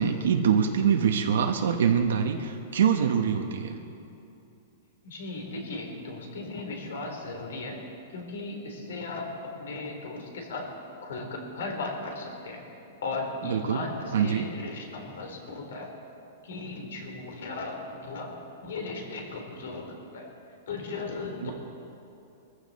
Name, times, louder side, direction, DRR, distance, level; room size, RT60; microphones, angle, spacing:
voice 1, 0.0-3.8 13.4-13.9 14.1-14.5 21.4-21.5, right 7 dB, 80° right, 4 dB, 1.0 m, -24 dB
voice 2, 5.0-7.8 8.1-10.7 11.0-12.6 13.0-15.9 16.4-20.3 20.7-21.5, left 3 dB, 75° left, 3 dB, 3.5 m, -36 dB
23.0 x 14.5 x 4.2 m, 2.7 s
supercardioid pair, 180°, 0 cm